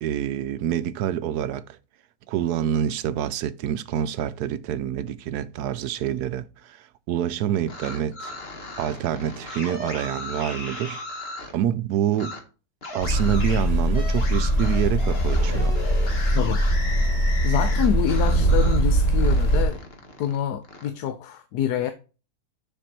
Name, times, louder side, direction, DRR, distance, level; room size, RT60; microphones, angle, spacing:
voice 1, 0.0-1.6 2.3-8.4 8.8-11.0 11.5-12.4 12.9-15.8, right 10 dB, 75° right, 1.1 m, -27 dB
sound 1, 7.5-11.6 12.1-12.4 12.8-18.9 19.2-20.9, left 2 dB, 40° left, 1.5 m, -37 dB
sound 2, 13.0-19.6, right 1 dB, 25° left, 1.9 m, -21 dB
voice 2, 16.3-16.7 17.4-19.8 20.2-21.9, left 10 dB, 75° left, 1.2 m, -26 dB
6.9 x 6.1 x 4.2 m
omnidirectional pair, 1.8 m